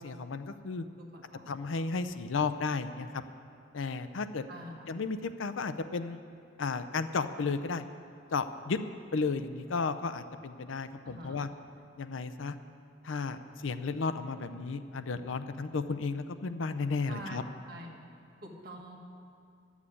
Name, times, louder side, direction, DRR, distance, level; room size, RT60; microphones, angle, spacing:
voice 1, 0.0-0.9 1.5-3.2 3.7-4.5 4.9-6.2 6.6-7.8 8.3-8.8 9.1-11.5 12.0-12.6 13.0-17.4, left 4 dB, 85° left, 11 dB, 0.5 m, -33 dB
voice 2, 1.0-1.5 4.5-4.9 11.0-11.4 17.1-17.4 17.7-17.9 18.4-19.0, right 1 dB, 50° right, -1 dB, 1.8 m, -45 dB
12.0 x 7.2 x 8.5 m, 2.4 s
head